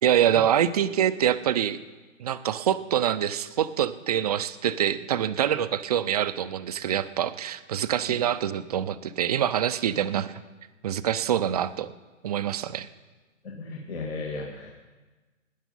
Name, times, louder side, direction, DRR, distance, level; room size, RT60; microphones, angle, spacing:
voice 1, 0.0-1.8 2.2-10.4 10.8-11.9 12.2-12.9, right 10 dB, 30° right, 12 dB, 0.5 m, -25 dB
voice 2, 13.4-14.7, left 3 dB, 50° left, 0 dB, 2.0 m, -35 dB
18.5 x 10.5 x 5.4 m, 1.3 s
figure-of-eight pair, 130°, 38 cm